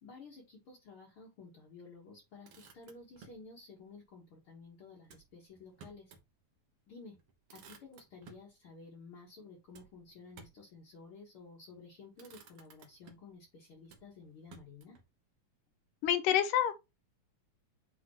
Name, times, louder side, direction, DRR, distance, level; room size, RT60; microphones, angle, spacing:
voice 1, 0.0-6.1 6.9-7.2 7.5-15.0, left 4 dB, 50° left, 2.0 m, -53 dB
Motor vehicle (road), 2.2-3.5 5.0-6.3 6.7-6.8 7.1-8.5 9.7-10.7 11.6-11.8 12.1-13.4 13.9-15.1, right 5 dB, 60° right, 1.6 m, -58 dB
voice 2, 16.0-16.7, left 10 dB, 85° left, 2.3 m, -27 dB
9.3 x 3.7 x 3.0 m
omnidirectional pair, 3.7 m